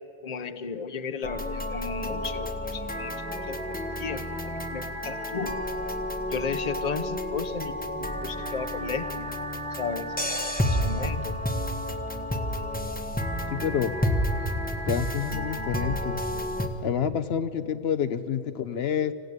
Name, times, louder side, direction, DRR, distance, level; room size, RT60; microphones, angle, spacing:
voice 1, 0.2-5.6 6.3-9.3 9.8-10.1 10.6-11.4, left 5 dB, 40° left, 11 dB, 1.0 m, -34 dB
sound 1, 1.2-16.7, equal, 10° left, 1.4 m, -30 dB
voice 2, 13.5-13.9 14.9-16.2 16.8-19.1, left 8 dB, 75° left, 10 dB, 1.0 m, -28 dB
27.0 x 15.5 x 9.5 m, 2.8 s
omnidirectional pair, 1.1 m